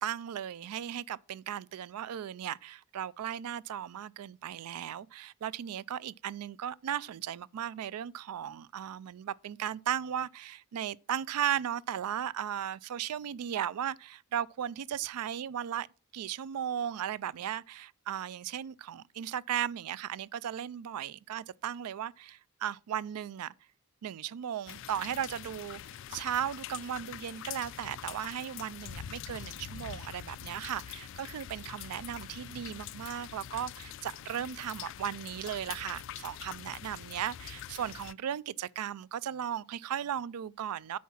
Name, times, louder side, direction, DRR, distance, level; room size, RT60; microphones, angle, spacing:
voice 1, 0.0-15.9 16.1-23.5 24.0-25.8 26.1-41.0, right 9 dB, 85° right, 0.4 m, -36 dB
sound 1, 24.7-38.1, left 10 dB, 55° left, 0.3 m, -44 dB
8.5 x 4.6 x 5.7 m
head